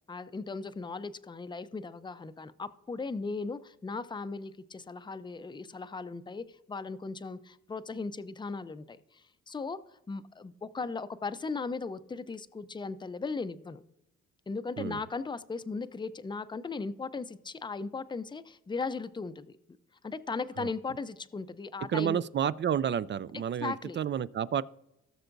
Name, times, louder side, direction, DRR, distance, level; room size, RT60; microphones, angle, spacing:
voice 1, 0.1-9.8 10.1-13.8 14.5-19.5 20.0-22.2 23.6-24.0, left 4 dB, 15° left, 13 dB, 0.5 m, -37 dB
voice 2, 21.9-24.6, right 9 dB, 40° right, 18 dB, 0.4 m, -30 dB
17.5 x 6.7 x 2.6 m, 0.87 s
cardioid pair, 90°, 30 cm